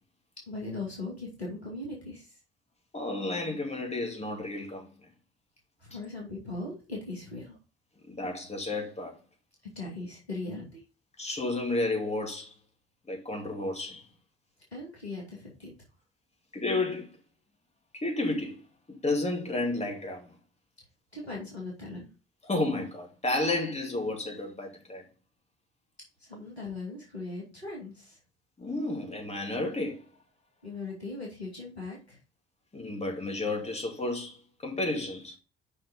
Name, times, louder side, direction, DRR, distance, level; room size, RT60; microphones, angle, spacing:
voice 1, 0.5-2.4 5.8-7.6 9.8-10.8 14.7-15.7 21.1-22.1 26.2-28.2 30.6-32.2, left 2 dB, 90° left, 2.4 m, -39 dB
voice 2, 2.9-4.9 8.1-9.2 11.2-12.5 13.1-14.0 16.5-17.1 18.0-18.6 19.0-20.3 22.5-25.0 28.6-30.0 32.7-34.4 34.6-35.4, left 2 dB, 20° left, 2.6 m, -31 dB
6.9 x 5.7 x 5.1 m
figure-of-eight pair, 50°, 31 cm